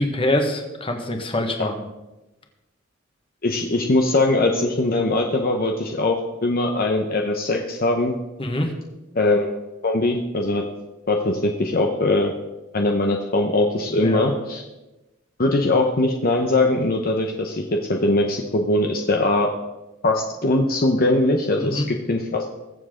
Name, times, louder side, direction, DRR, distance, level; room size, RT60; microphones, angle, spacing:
voice 1, 0.0-1.8 8.4-8.7 13.9-14.3 21.6-21.9, left 1 dB, 25° left, 4 dB, 1.5 m, -24 dB
voice 2, 3.4-8.1 9.1-9.5 9.8-10.6 11.1-12.3 12.7-14.6 15.4-17.6 17.9-19.5 20.0-22.5, left 2 dB, 50° left, 2 dB, 0.9 m, -21 dB
21.0 x 7.3 x 3.8 m, 1.0 s
head